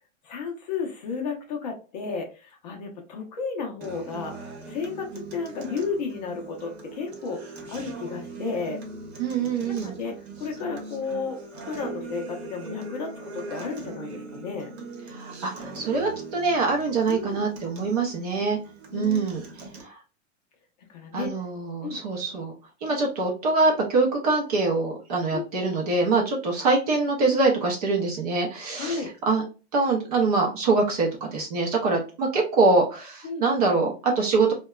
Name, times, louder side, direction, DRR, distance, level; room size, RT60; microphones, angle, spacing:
voice 1, 0.2-4.3 4.7-7.4 7.7-8.8 9.7-11.4 11.6-14.7 17.1-17.4 18.9-19.3 20.9-21.3 21.8-22.0 25.3-25.4 28.8-29.1 33.2-33.5, left 5 dB, 35° left, 1 dB, 0.5 m, -33 dB
Acoustic guitar, 3.8-19.8, right 3 dB, 60° right, 0.9 m, -41 dB
voice 2, 9.2-9.9 15.1-18.6 18.9-19.4 21.1-22.5 22.8-29.4 29.7-34.5, right 3 dB, 35° right, 0 dB, 0.5 m, -24 dB
2.7 x 2.2 x 2.2 m, 0.33 s
supercardioid pair, 170°, 37 cm